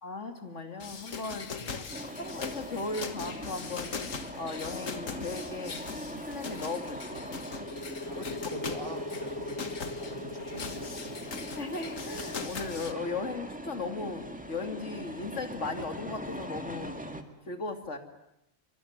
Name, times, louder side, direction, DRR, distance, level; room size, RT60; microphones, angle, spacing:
voice 1, 0.0-3.9 4.4-5.8 6.1-7.4 8.1-8.3 11.6-18.0, left 3 dB, 65° left, 6 dB, 2.8 m, -37 dB
sound 1, 0.8-12.9, left 5 dB, 85° left, 2.0 m, -41 dB
voice 2, 1.6-1.9 8.0-9.7 10.0-11.5, equal, 25° right, 3 dB, 4.2 m, -44 dB
sound 2, 1.9-17.2, equal, 5° right, 2.0 m, -42 dB
sound 3, 7.5-14.9, left 2 dB, 15° left, 1.3 m, -42 dB
25.0 x 24.0 x 9.5 m, 0.84 s
omnidirectional pair, 1.3 m